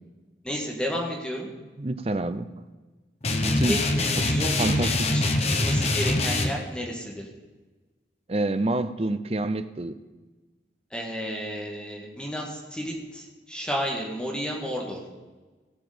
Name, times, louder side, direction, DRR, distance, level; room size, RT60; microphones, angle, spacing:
voice 1, 0.4-1.5 3.7-7.3 10.9-15.0, equal, 5° left, -1 dB, 1.8 m, -32 dB
voice 2, 1.8-2.5 3.4-3.8 4.6-4.9 8.3-10.0, right 2 dB, 35° right, 12 dB, 0.6 m, -27 dB
sound 1, 3.2-6.5, left 2 dB, 35° left, 1.1 m, -24 dB
17.0 x 7.0 x 5.1 m, 1.3 s
head